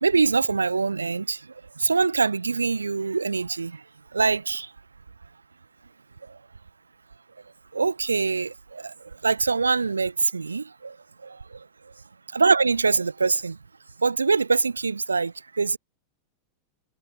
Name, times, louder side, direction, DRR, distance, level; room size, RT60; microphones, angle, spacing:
voice 1, 0.0-1.4 1.8-3.8 4.1-4.7 7.7-8.9 9.2-11.0 11.2-11.4 12.3-13.6 14.0-15.8, right 4 dB, 75° right, 0.6 m, -23 dB
figure-of-eight pair, 90°, 0 cm